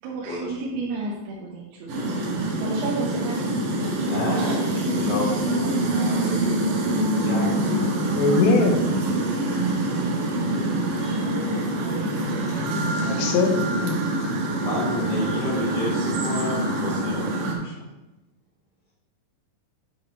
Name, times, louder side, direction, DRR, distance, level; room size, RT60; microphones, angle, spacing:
voice 1, 0.0-5.1 7.4-8.2 8.8-9.8, right 3 dB, 85° right, -4 dB, 3.2 m, -34 dB
sound 1, 1.9-17.5, right 1 dB, 65° right, 2.1 m, -25 dB
voice 2, 4.0-4.5 4.9-6.8 7.2-7.8 14.6-17.8, left 1 dB, 25° right, -7 dB, 1.2 m, -31 dB
voice 3, 8.1-8.8 13.0-13.5 13.8-14.5, left 3 dB, 80° left, 2 dB, 3.0 m, -22 dB
9.8 x 6.1 x 2.9 m, 0.99 s
omnidirectional pair, 5.2 m